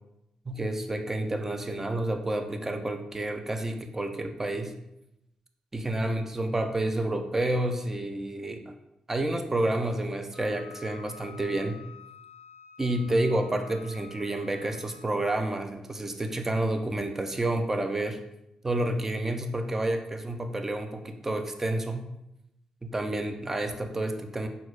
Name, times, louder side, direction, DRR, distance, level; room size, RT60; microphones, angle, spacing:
voice 1, 0.5-4.7 5.7-8.7 9.1-11.8 12.8-18.2 18.6-22.1 22.8-24.5, right 1 dB, 20° right, 6 dB, 0.3 m, -29 dB
Wind instrument woodwind instrument, 10.3-15.5, left 6 dB, 35° left, 0.5 m, -50 dB
4.2 x 2.1 x 2.3 m, 0.86 s
cardioid pair, 90°, 2 cm